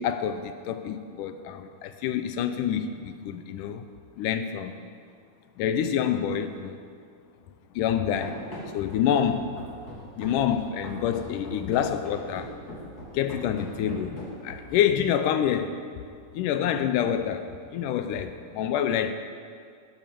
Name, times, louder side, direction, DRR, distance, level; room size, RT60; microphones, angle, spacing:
voice 1, 0.0-3.8 4.2-4.7 5.6-6.8 7.8-8.4 8.7-9.6 10.2-12.5 13.1-15.8 16.3-19.1, left 9 dB, 85° left, 9 dB, 2.2 m, -27 dB
Run, 8.2-14.8, equal, 30° left, 2.8 m, -40 dB
18.5 x 7.2 x 6.8 m, 2.2 s
omnidirectional pair, 3.7 m